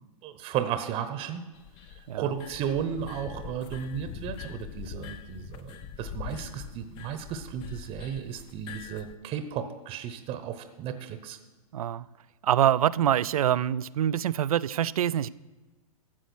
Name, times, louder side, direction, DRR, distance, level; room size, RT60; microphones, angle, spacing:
voice 1, 0.2-1.4 2.2-11.4, right 8 dB, 30° right, 10 dB, 0.9 m, -34 dB
sound 1, 1.5-9.1, left 10 dB, 25° left, 0.5 m, -43 dB
voice 2, 11.7-12.1 12.4-15.3, right 10 dB, 70° right, 19 dB, 0.4 m, -25 dB
13.0 x 7.8 x 6.2 m, 1.2 s
hypercardioid pair, 115°, 19 cm